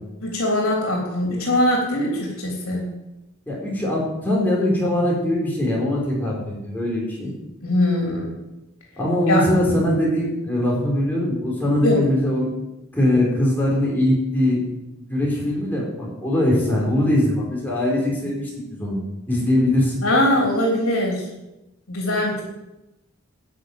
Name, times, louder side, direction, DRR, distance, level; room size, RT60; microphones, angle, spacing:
voice 1, 0.2-2.9 7.6-8.3 9.3-9.4 11.8-12.0 20.0-21.2 21.9-22.4, left 1 dB, 75° left, -2 dB, 3.4 m, -21 dB
voice 2, 3.5-7.3 9.0-12.5 12.9-14.6 15.0-19.0 19.3-20.0, left 1 dB, 10° left, -4 dB, 4.0 m, -21 dB
11.5 x 6.5 x 9.3 m, 0.94 s
head